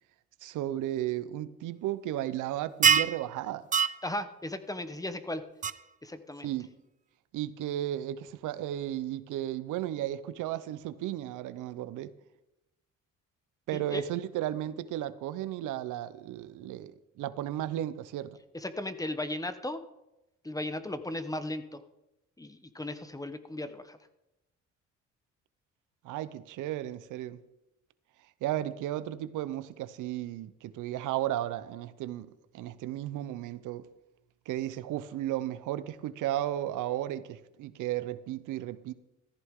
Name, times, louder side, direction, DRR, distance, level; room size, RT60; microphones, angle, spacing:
voice 1, 0.4-3.7 6.4-6.7 7.3-12.1 13.7-18.4 26.0-27.4 28.4-32.3 32.5-33.8 34.5-38.9, right 13 dB, 85° right, 0.7 m, -34 dB
sound 1, 2.8-3.2 3.7-4.0 5.6-5.7, right 7 dB, 25° right, 0.4 m, -22 dB
voice 2, 4.0-5.4 6.0-6.5 13.7-14.0 18.5-19.8 20.4-21.8 22.4-24.0, left 1 dB, 10° left, 1.0 m, -36 dB
14.5 x 14.5 x 3.7 m
cardioid pair, 90°, 30 cm